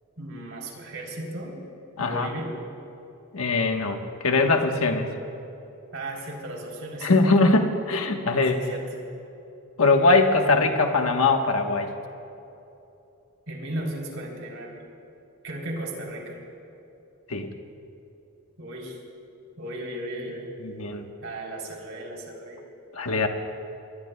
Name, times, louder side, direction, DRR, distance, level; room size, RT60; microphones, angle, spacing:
voice 1, 0.2-1.6 2.0-2.6 5.9-7.2 8.5-8.9 13.5-14.8 15.4-16.4 18.6-19.0 19.6-20.5 21.2-22.6, right 1 dB, 65° right, -1 dB, 3.4 m, -35 dB
voice 2, 2.0-2.3 3.3-5.1 7.0-8.6 9.8-11.9 17.3-17.5 20.6-21.1 22.9-23.3, left 3 dB, 85° left, 4 dB, 1.2 m, -21 dB
26.0 x 22.5 x 2.3 m, 2.9 s
head